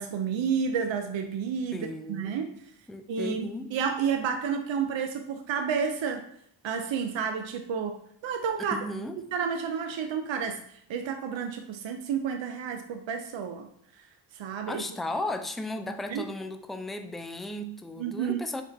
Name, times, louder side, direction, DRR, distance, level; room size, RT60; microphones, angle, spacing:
voice 1, 0.0-2.5 3.1-3.5 3.7-6.2 6.6-8.0 8.2-8.8 9.3-10.6 10.9-13.7 14.0-14.1 14.3-14.8 16.1-16.3 18.0-18.4, right 6 dB, 70° right, 5 dB, 0.6 m, -30 dB
voice 2, 1.7-2.4 2.9-3.7 8.7-9.2 14.7-18.6, left 1 dB, ahead, 8 dB, 0.4 m, -35 dB
5.3 x 2.5 x 3.9 m, 0.67 s
cardioid pair, 50°, 48 cm